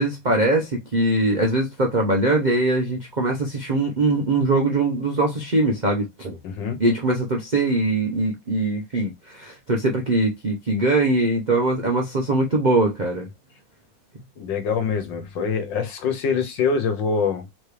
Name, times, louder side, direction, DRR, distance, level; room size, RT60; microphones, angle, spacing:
voice 1, 0.0-6.4 6.8-13.3, right 2 dB, 90° right, 0.4 m, -22 dB
voice 2, 6.4-6.8 14.4-17.5, left 5 dB, 70° left, 1.7 m, -24 dB
4.2 x 3.1 x 3.3 m
omnidirectional pair, 2.1 m